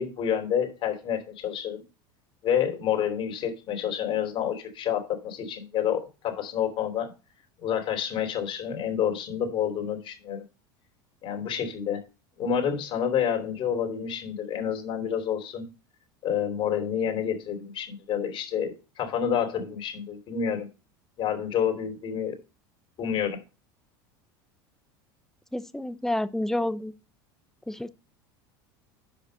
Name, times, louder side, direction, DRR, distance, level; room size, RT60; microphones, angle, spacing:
voice 1, 0.0-1.8 2.4-7.1 7.6-10.4 11.2-12.0 12.4-15.6 16.2-20.7 21.2-22.4 23.0-23.4, left 8 dB, 45° left, 3.0 m, -28 dB
voice 2, 25.5-26.9 27.7-27.9, left 1 dB, 5° left, 0.6 m, -29 dB
6.9 x 5.2 x 6.4 m
hypercardioid pair, 95°, 12 cm